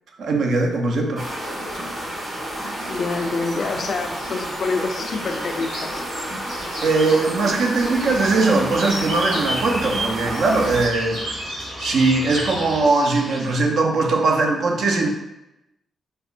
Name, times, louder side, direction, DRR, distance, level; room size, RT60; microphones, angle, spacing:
voice 1, 0.2-1.9 6.8-11.5 11.8-15.1, right 3 dB, 70° right, 2 dB, 0.4 m, -20 dB
sound 1, 1.2-10.9, equal, 40° right, 1.5 m, -30 dB
sound 2, 2.8-13.5, right 1 dB, 90° right, 1.0 m, -34 dB
voice 2, 2.9-6.0, left 4 dB, 60° left, 5 dB, 0.3 m, -27 dB
sound 3, 7.9-12.9, equal, 15° right, 0.7 m, -37 dB
3.4 x 2.0 x 2.5 m, 0.90 s
hypercardioid pair, 45°, 0 cm